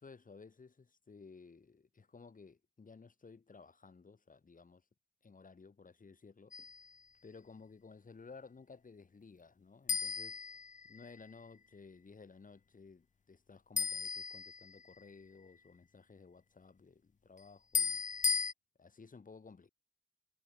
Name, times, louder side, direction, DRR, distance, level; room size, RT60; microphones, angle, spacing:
voice 1, 0.0-4.8 5.2-6.5 7.2-10.6 10.8-18.0 18.8-19.7, left 4 dB, 85° left, 7.2 m, -56 dB
sound 1, 6.5-6.9 9.9-11.2 13.8-15.0 17.7-18.5, left 5 dB, 65° left, 0.7 m, -36 dB
cardioid pair, 40°, 14 cm